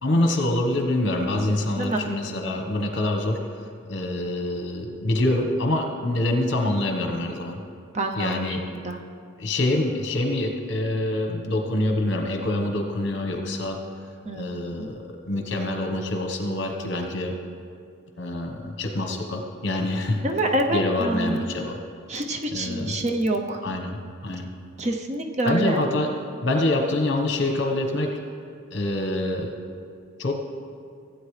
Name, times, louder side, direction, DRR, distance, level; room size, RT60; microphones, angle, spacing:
voice 1, 0.0-7.6 8.1-8.6 9.4-13.8 14.3-17.3 18.2-20.2 20.7-21.8 22.5-23.0 23.6-24.0 24.2-24.5 25.4-26.1 26.4-28.1 28.7-29.5 30.2-30.3, left 1 dB, 55° left, 3 dB, 1.1 m, -25 dB
voice 2, 1.7-2.1 7.9-9.0 14.2-14.9 20.2-21.5 22.1-23.6 24.8-25.9, right 1 dB, 30° right, 4 dB, 0.6 m, -27 dB
16.0 x 8.2 x 3.3 m, 2.2 s
head